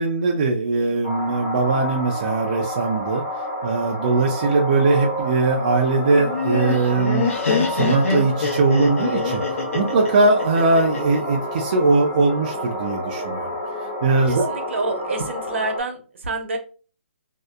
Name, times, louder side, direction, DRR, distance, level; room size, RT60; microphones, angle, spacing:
voice 1, 0.0-3.2 3.6-7.2 7.7-9.4 9.7-13.5 14.0-14.5, right 3 dB, 35° right, 0 dB, 0.3 m, -20 dB
sound 1, 1.0-15.8, equal, 15° left, 0.6 m, -29 dB
Laughter, 6.1-11.2, left 4 dB, 85° left, 0.8 m, -24 dB
voice 2, 14.3-16.6, right 3 dB, 60° right, 4 dB, 0.8 m, -28 dB
2.6 x 2.0 x 2.3 m, 0.37 s
hypercardioid pair, 160°, 7 cm